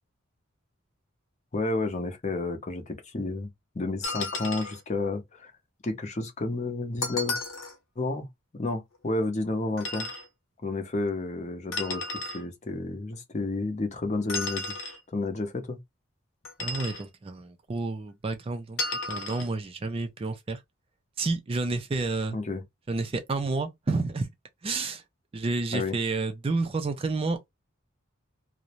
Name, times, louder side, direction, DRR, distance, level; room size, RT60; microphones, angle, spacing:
voice 1, 1.5-3.5 3.7-5.5 5.8-7.4 8.0-8.3 8.6-10.1 10.6-14.8 15.1-15.8 22.3-22.6 25.7-26.0, left 2 dB, 35° left, 0.6 m, -31 dB
sound 1, 4.0-4.8 7.0-7.8 9.8-10.3 11.7-12.4 14.3-15.0 16.4-17.0 18.8-19.5, left 2 dB, 70° left, 0.9 m, -33 dB
voice 2, 16.6-18.8 19.1-20.6 21.2-22.4 22.9-24.3 24.6-25.0 25.3-27.5, right 3 dB, 25° right, 0.3 m, -30 dB
2.5 x 2.0 x 2.8 m
head